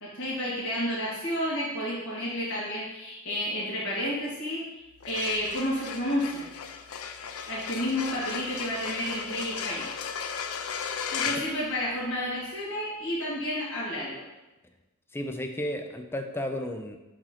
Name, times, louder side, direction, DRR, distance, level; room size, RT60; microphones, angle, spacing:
voice 1, 0.0-4.7 5.1-6.5 7.5-9.9 11.1-14.2, left 1 dB, 65° left, -8 dB, 2.2 m, -31 dB
sound 1, 4.9-12.4, left 6 dB, 85° left, 0.5 m, -36 dB
voice 2, 15.1-17.0, left 1 dB, 10° left, 5 dB, 0.5 m, -33 dB
4.8 x 4.5 x 5.8 m, 1.0 s
head